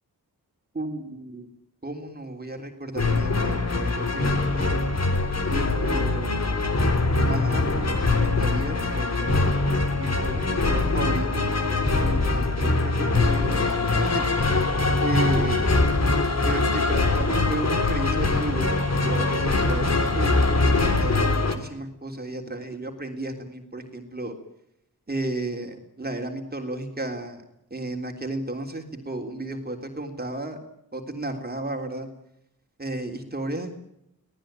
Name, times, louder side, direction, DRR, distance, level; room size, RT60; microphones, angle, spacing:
voice 1, 0.7-1.5 1.8-4.9 5.5-6.5 7.2-9.5 10.0-13.7 14.0-14.3 15.0-15.7 16.5-20.3 20.7-24.4 25.1-27.4 27.7-30.6 30.9-32.1 32.8-33.8, right 2 dB, 25° right, 3 dB, 3.5 m, -33 dB
sound 1, 3.0-21.5, left 3 dB, 45° left, 3.1 m, -23 dB
26.0 x 18.5 x 9.0 m, 0.81 s
wide cardioid pair, 110°, 38 cm